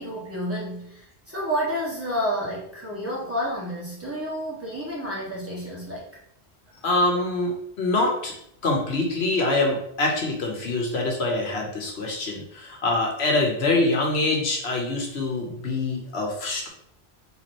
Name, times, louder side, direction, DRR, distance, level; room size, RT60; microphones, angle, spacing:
voice 1, 0.0-6.1 6.7-6.8, equal, 15° right, -6 dB, 1.4 m, -30 dB
voice 2, 6.8-8.3 8.6-16.7, left 2 dB, 80° left, 0 dB, 1.2 m, -25 dB
3.8 x 3.1 x 4.3 m, 0.72 s
omnidirectional pair, 1.1 m